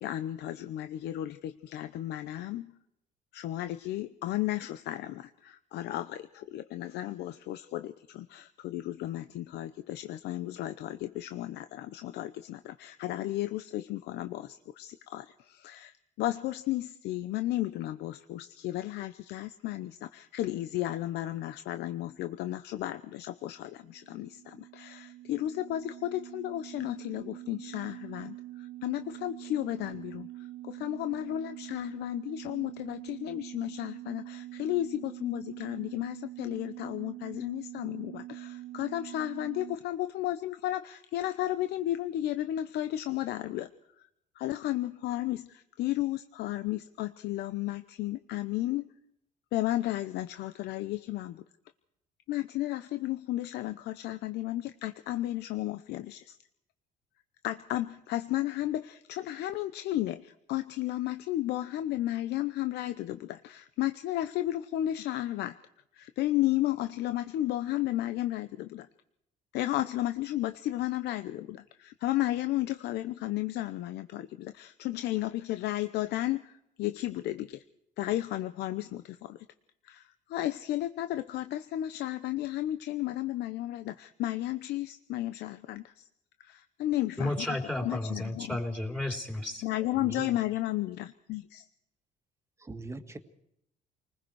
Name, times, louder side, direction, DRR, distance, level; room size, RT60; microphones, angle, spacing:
voice 1, 0.0-2.7 3.3-43.7 44.3-48.9 49.5-51.4 52.3-56.4 57.4-65.6 65.9-68.9 69.5-77.6 78.0-79.5 79.8-86.1 86.4-88.6 89.6-91.7, left 14 dB, 75° left, 10 dB, 0.8 m, -33 dB
sound 1, 23.6-39.8, right 16 dB, 75° right, 1.9 m, -44 dB
voice 2, 87.2-89.6, left 1 dB, 5° left, 0 dB, 3.3 m, -32 dB
voice 3, 90.0-90.3 92.6-93.2, right 3 dB, 15° right, 7 dB, 2.0 m, -41 dB
29.5 x 20.0 x 4.8 m, 0.79 s
cardioid pair, 110°, 17 cm